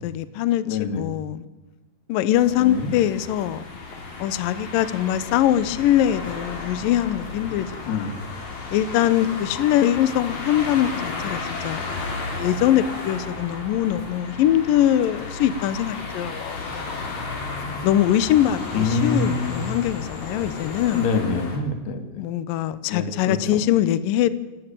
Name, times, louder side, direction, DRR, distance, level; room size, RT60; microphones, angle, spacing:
voice 1, 0.0-1.4 2.1-3.6 4.2-8.1 8.7-10.9 11.2-12.1 12.4-17.1 17.8-21.1 22.2-24.3, left 12 dB, 80° left, 15 dB, 2.0 m, -22 dB
voice 2, 0.6-1.0 2.6-2.9 7.9-8.2 17.6-17.8 18.7-19.6 20.9-22.2 22.9-23.6, left 4 dB, 65° left, 8 dB, 4.1 m, -26 dB
sound 1, 2.3-21.6, left 3 dB, 40° left, 4.7 m, -33 dB
27.5 x 13.0 x 8.9 m, 1.2 s
omnidirectional pair, 5.2 m